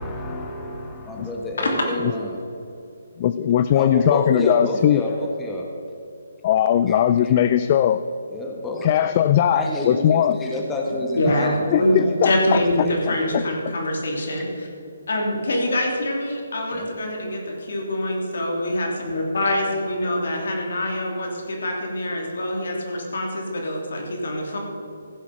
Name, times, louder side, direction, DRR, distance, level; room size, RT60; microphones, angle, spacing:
voice 1, 0.0-2.4 3.8-5.7 6.9-7.0 7.2-7.5 8.3-9.1 9.5-12.3 12.8-13.5 16.7-16.9, left 1 dB, 10° left, 0 dB, 1.5 m, -29 dB
voice 2, 3.2-5.0 6.4-8.0 8.8-10.4 11.7-12.6 13.1-13.4, left 10 dB, 35° left, 12 dB, 0.4 m, -19 dB
voice 3, 11.1-14.7 15.1-24.6, left 1 dB, 70° left, 0 dB, 3.1 m, -24 dB
15.5 x 7.3 x 6.0 m, 2.6 s
hypercardioid pair, 155°, 0 cm